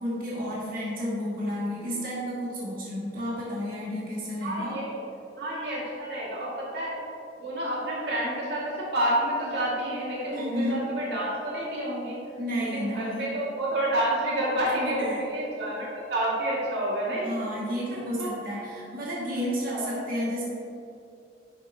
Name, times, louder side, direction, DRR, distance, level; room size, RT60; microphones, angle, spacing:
voice 1, 0.0-4.8 10.3-10.8 12.4-13.3 14.8-15.2 17.2-20.4, equal, 55° right, -6 dB, 2.1 m, -31 dB
voice 2, 4.4-5.0 5.4-7.0 7.4-12.2 12.7-17.3 18.2-18.3 19.7-20.0, right 1 dB, 70° right, -6 dB, 2.1 m, -29 dB
10.5 x 8.0 x 2.9 m, 2.6 s
head